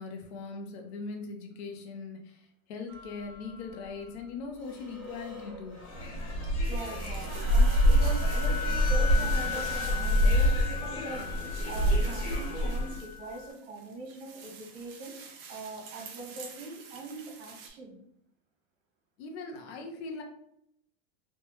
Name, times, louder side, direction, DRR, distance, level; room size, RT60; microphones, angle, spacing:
voice 1, 0.0-5.8 19.2-20.2, left 4 dB, 65° left, 3 dB, 0.7 m, -40 dB
sound 1, 2.9-3.7 4.7-6.0 6.5-6.6 6.9-13.5, left 7 dB, 5° left, 0.8 m, -39 dB
sound 2, 5.8-13.0, equal, 85° left, 1.5 m, -26 dB
sound 3, 6.6-17.7, right 6 dB, 30° right, 0.4 m, -49 dB
voice 2, 6.6-18.0, right 3 dB, 65° right, -2 dB, 1.4 m, -42 dB
3.1 x 2.2 x 3.0 m, 0.75 s
supercardioid pair, 155°, 33 cm